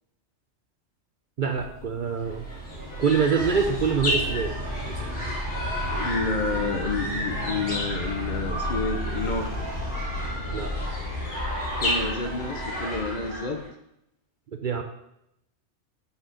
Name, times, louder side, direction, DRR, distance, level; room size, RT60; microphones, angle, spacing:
voice 1, 1.4-2.5 3.0-4.5 4.9-5.1 10.5-10.8 14.5-14.8, right 6 dB, 50° right, 5 dB, 0.7 m, -25 dB
sound 1, 1.5-2.2 3.2-12.6, left 2 dB, 30° right, 1.8 m, -34 dB
sound 2, 2.1-13.7, equal, 70° left, 2.7 m, -32 dB
voice 2, 5.9-9.5 11.8-13.6, left 3 dB, 45° left, 5 dB, 0.8 m, -29 dB
6.3 x 4.7 x 6.3 m, 0.80 s
omnidirectional pair, 1.2 m